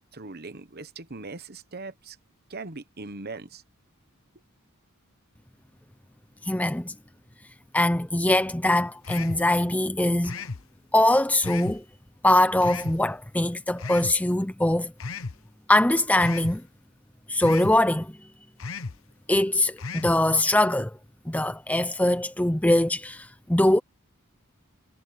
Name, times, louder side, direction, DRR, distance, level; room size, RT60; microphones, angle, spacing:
voice 1, 0.1-2.2 2.5-3.6, right 3 dB, 45° right, 1.2 m, -40 dB
voice 2, 6.5-6.9 7.7-10.4 10.9-11.8 12.2-14.9 15.7-16.6 17.3-18.1 19.3-20.9 21.3-23.8, left 1 dB, 5° left, 0.6 m, -22 dB
sound 1, 9.0-9.5 10.2-10.6 11.4-11.8 12.6-13.0 13.8-14.2 15.0-15.4 16.2-16.6 17.4-17.8 18.6-19.0 19.8-20.2, left 4 dB, 65° left, 1.0 m, -35 dB
head